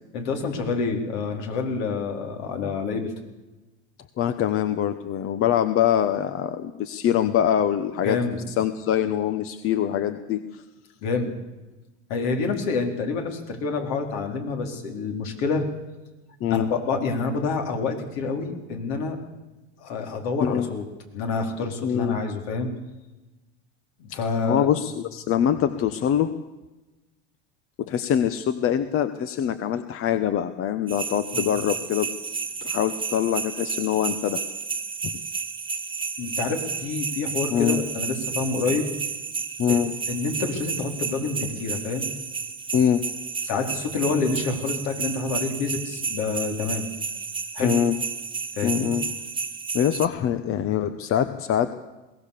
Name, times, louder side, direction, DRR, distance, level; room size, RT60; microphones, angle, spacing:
voice 1, 0.1-3.1 8.0-8.4 11.0-11.3 12.1-15.7 16.5-19.2 19.8-20.8 21.1-22.7 24.0-24.7 31.3-31.5 36.2-38.9 40.1-42.1 43.4-46.9 47.5-47.7 48.6-48.9, left 4 dB, 65° left, 3 dB, 4.4 m, -27 dB
voice 2, 4.2-10.6 16.4-16.7 20.4-20.7 21.8-22.2 24.4-26.3 27.8-32.1 32.6-34.4 37.5-37.8 39.6-39.9 42.7-43.0 47.6-48.0 48.6-49.0 49.7-51.7, left 9 dB, 40° left, 11 dB, 1.1 m, -24 dB
sound 1, 30.9-50.1, right 5 dB, 15° right, 1.6 m, -32 dB
22.0 x 17.5 x 6.9 m, 1.1 s
supercardioid pair, 110°, 34 cm